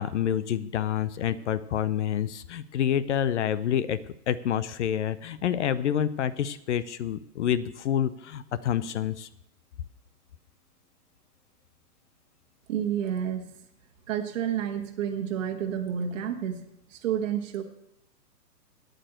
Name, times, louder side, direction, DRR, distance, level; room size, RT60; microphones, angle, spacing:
voice 1, 0.0-4.0 4.3-9.3, left 9 dB, 45° left, 16 dB, 0.7 m, -28 dB
voice 2, 12.7-13.6 14.1-17.6, right 9 dB, 50° right, 4 dB, 1.4 m, -30 dB
9.2 x 8.9 x 7.6 m, 0.81 s
hypercardioid pair, 140°, 49 cm